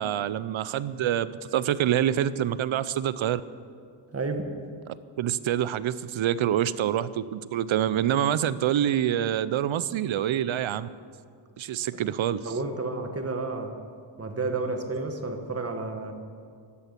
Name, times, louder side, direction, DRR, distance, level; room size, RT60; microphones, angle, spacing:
voice 1, 0.0-3.4 5.2-10.9 11.6-12.5, right 10 dB, 70° right, 16 dB, 0.6 m, -26 dB
voice 2, 4.1-4.4 12.4-13.7 14.2-16.1, right 3 dB, 30° right, 6 dB, 1.3 m, -31 dB
13.0 x 12.5 x 8.2 m, 2.2 s
wide cardioid pair, 180°, 49 cm